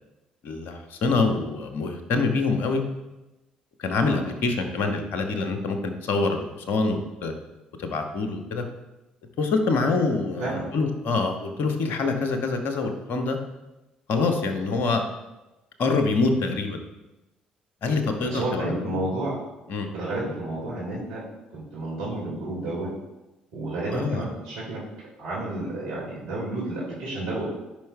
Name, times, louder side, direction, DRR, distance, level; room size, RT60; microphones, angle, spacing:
voice 1, 0.4-2.8 3.8-7.3 7.8-8.6 9.4-13.4 14.1-15.0 15.8-16.8 17.8-19.0 19.7-19.9 23.9-24.2, left 3 dB, 55° left, 5 dB, 1.1 m, -25 dB
voice 2, 18.3-19.4 19.9-21.2 21.5-22.9 23.5-24.8 25.2-27.5, right 2 dB, 65° right, -6 dB, 2.1 m, -31 dB
13.5 x 5.5 x 2.3 m, 1.0 s
figure-of-eight pair, 50°, 4 cm